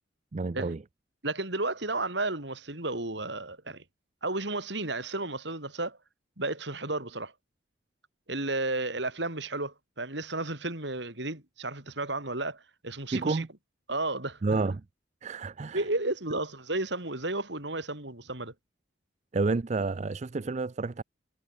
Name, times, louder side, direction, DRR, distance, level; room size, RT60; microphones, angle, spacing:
voice 1, 0.3-0.8 13.1-13.5 14.4-14.8 15.2-15.8 19.3-21.0, right 3 dB, 40° right, 0.5 m, -29 dB
voice 2, 1.2-3.8 4.2-6.0 6.4-7.3 8.3-13.4 13.9-14.4 15.7-18.5, right 2 dB, 65° right, 4.8 m, -33 dB
head